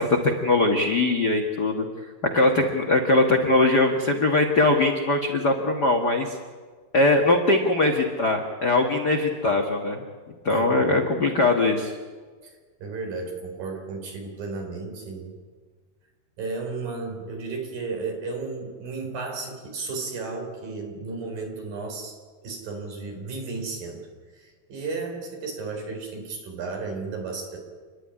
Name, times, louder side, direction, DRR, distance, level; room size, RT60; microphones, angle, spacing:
voice 1, 0.0-1.8 2.3-6.3 6.9-10.0 10.4-11.9, left 2 dB, 55° left, 2 dB, 1.1 m, -21 dB
voice 2, 10.5-11.1 12.4-15.4 16.4-27.6, right 4 dB, 65° right, 2 dB, 5.7 m, -34 dB
29.5 x 11.5 x 10.0 m, 1.5 s
omnidirectional pair, 4.4 m